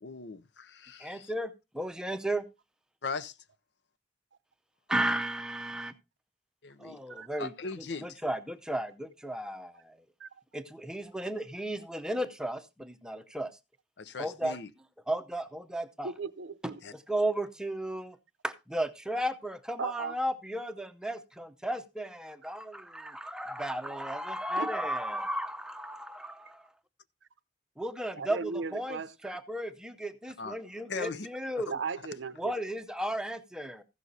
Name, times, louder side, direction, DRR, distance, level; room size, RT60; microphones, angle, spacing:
voice 1, 0.0-1.3 3.0-3.4 6.6-7.0 7.4-8.2 14.0-14.7 16.8-16.9 30.4-30.5 30.9-31.3 31.6-31.7, left 4 dB, 65° left, 0.7 m, -39 dB
voice 2, 1.0-2.4 4.9-5.9 6.8-7.5 8.0-9.9 10.5-13.5 14.2-14.6 15.1-16.1 16.9-18.2 18.4-26.6 27.8-31.7 32.4-33.8, right 1 dB, 5° right, 0.7 m, -34 dB
voice 3, 16.0-16.8 19.8-20.2 24.6-24.7 28.2-29.4 31.7-32.5, right 4 dB, 85° right, 0.7 m, -37 dB
15.0 x 6.3 x 4.0 m
head